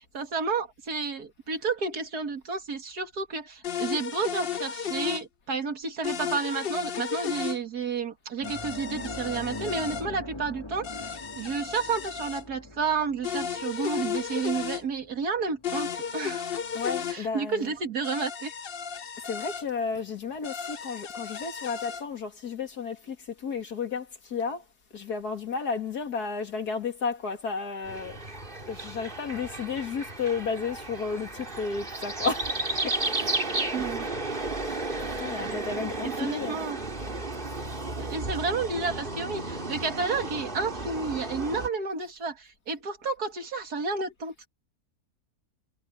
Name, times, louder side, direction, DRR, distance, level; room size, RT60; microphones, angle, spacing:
voice 1, 0.0-11.1 11.4-16.5 17.1-18.5 33.7-34.1 36.0-36.8 38.0-44.5, right 4 dB, 75° right, 2.7 m, -31 dB
sound 1, 3.6-5.2 6.0-7.6 8.4-10.0 10.8-12.4 13.2-14.8 15.6-17.2 18.0-19.6 20.4-22.0, left 8 dB, 45° left, 0.8 m, -34 dB
sound 2, 8.4-17.3 17.7-17.9 19.9-20.0, left 2 dB, 15° left, 2.1 m, -43 dB
voice 2, 16.7-17.7 19.2-24.6 24.9-28.2 28.7-32.5 32.8-32.9 34.6-34.8 35.2-36.6, left 5 dB, 75° left, 2.9 m, -32 dB
sound 3, 27.8-41.7, right 2 dB, 35° right, 3.0 m, -33 dB
omnidirectional pair, 1.7 m